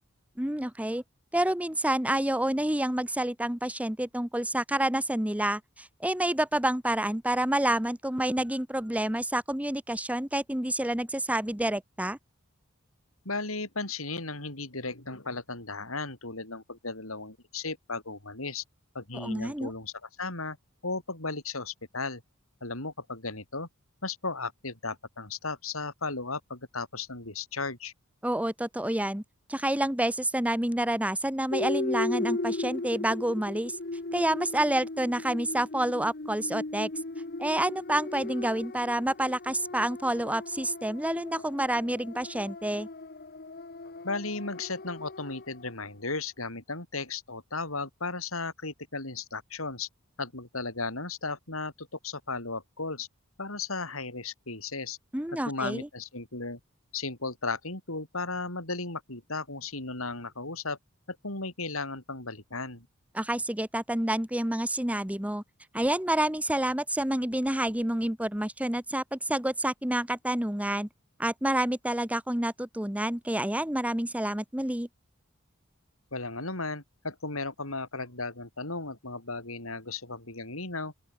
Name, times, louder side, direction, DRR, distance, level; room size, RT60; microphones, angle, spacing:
voice 1, 0.4-1.0 1.3-12.2 19.1-19.7 28.2-29.2 29.5-33.8 34.1-36.9 37.4-42.9 55.1-55.9 63.1-65.4 65.7-70.9 71.2-74.9, right 1 dB, 5° right, 1.2 m, -28 dB
voice 2, 13.2-18.6 18.9-19.9 20.2-20.6 20.8-22.2 22.6-23.7 24.0-27.9 44.0-49.9 50.2-53.1 53.4-55.0 55.4-56.6 56.9-60.8 61.1-62.9 76.1-80.9, left 3 dB, 85° left, 7.9 m, -35 dB
sound 1, 31.5-45.7, left 2 dB, 50° left, 1.3 m, -37 dB
open air
head